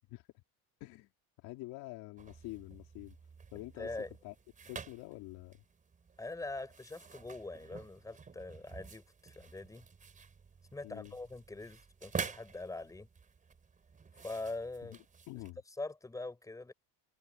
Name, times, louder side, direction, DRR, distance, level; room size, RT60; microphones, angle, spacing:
voice 1, 0.1-0.4 0.8-1.1 1.4-3.2 3.5-3.9 4.2-4.3 4.7-5.6 10.8-11.1 14.8-15.0 15.3-15.6, left 20 dB, 75° left, 3.6 m, -47 dB
sound 1, 2.2-15.5, right 5 dB, 20° right, 4.2 m, -48 dB
voice 2, 3.8-4.1 6.2-9.9 10.7-13.1 14.2-15.0 15.8-16.7, left 2 dB, 10° left, 5.5 m, -43 dB
cardioid pair, 155°, 36 cm